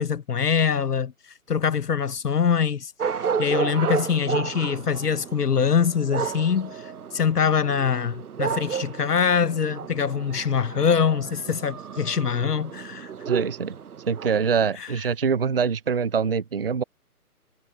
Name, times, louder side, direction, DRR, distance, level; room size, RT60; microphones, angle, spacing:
voice 1, 0.0-2.9 3.4-13.1 14.8-14.9, left 7 dB, 85° left, 1.1 m, -24 dB
sound 1, 3.0-14.7, right 7 dB, 70° right, 1.0 m, -32 dB
voice 2, 13.3-13.8 14.1-16.8, right 6 dB, 40° right, 0.6 m, -24 dB
figure-of-eight pair, 160°, 45 cm